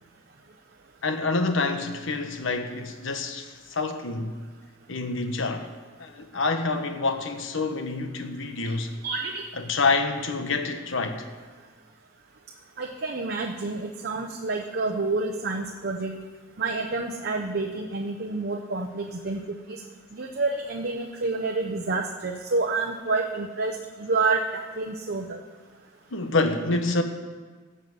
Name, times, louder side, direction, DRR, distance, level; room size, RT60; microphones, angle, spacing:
voice 1, 1.0-4.4 4.9-5.7 6.0-8.9 9.6-11.3 26.1-27.0, left 3 dB, 65° left, 1.1 m, -27 dB
voice 2, 9.0-9.4 12.8-16.2 16.6-19.4 20.2-25.4, right 3 dB, 55° right, 0.8 m, -28 dB
16.0 x 5.6 x 7.8 m
head